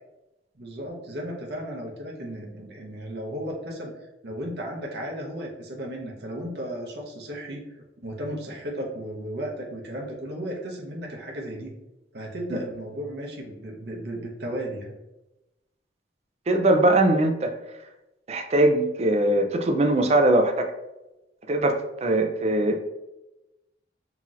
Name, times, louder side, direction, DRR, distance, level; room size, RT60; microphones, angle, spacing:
voice 1, 0.6-3.9 4.2-11.7 12.1-15.0, equal, 60° right, -1 dB, 0.9 m, -35 dB
voice 2, 16.5-17.6 18.3-20.7 21.5-22.8, right 1 dB, 35° right, 6 dB, 0.4 m, -21 dB
5.6 x 2.9 x 2.4 m, 0.98 s
head